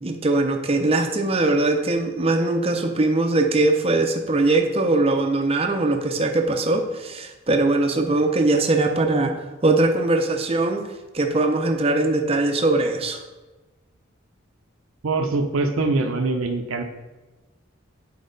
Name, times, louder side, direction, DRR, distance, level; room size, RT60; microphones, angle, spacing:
voice 1, 0.0-9.3 9.6-10.9 11.1-13.2, right 2 dB, 30° right, 5 dB, 0.6 m, -21 dB
voice 2, 15.0-16.8, right 3 dB, 85° right, 4 dB, 0.7 m, -23 dB
8.5 x 4.6 x 4.0 m, 1.2 s
head